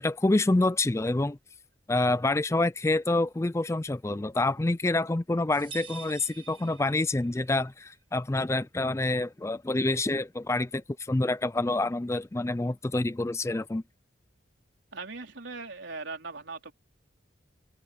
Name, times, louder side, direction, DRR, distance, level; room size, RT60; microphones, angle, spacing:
voice 1, 0.0-1.4 1.9-13.8, left 2 dB, 15° left, 0.4 m, -27 dB
sound 1, 5.5-7.5, right 7 dB, 25° right, 1.7 m, -46 dB
voice 2, 14.9-16.7, right 3 dB, 70° right, 3.9 m, -39 dB
head